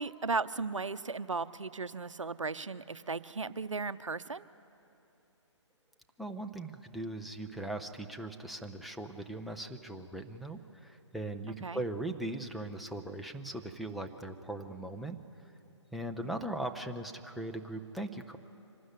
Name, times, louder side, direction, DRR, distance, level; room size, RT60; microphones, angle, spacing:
voice 1, 0.0-4.5 11.6-11.8 16.2-16.3, right 4 dB, 85° right, 14 dB, 0.7 m, -36 dB
voice 2, 6.2-15.2 15.9-18.4, right 1 dB, ahead, 3 dB, 0.5 m, -39 dB
25.0 x 12.5 x 9.5 m, 2.9 s
figure-of-eight pair, 140°, 16 cm